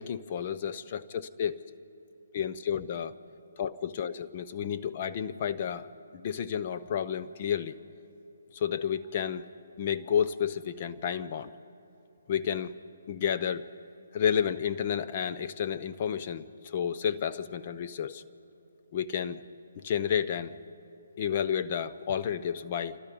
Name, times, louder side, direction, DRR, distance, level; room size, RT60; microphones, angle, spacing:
voice 1, 0.0-1.6 2.3-3.1 3.6-5.9 6.1-7.8 8.5-9.5 9.8-11.5 12.3-12.7 13.1-13.7 14.1-18.2 18.9-19.4 19.7-20.6 21.2-23.0, left 8 dB, 35° left, 11 dB, 0.7 m, -31 dB
28.5 x 27.0 x 5.4 m, 3.0 s
hypercardioid pair, 160°, 0 cm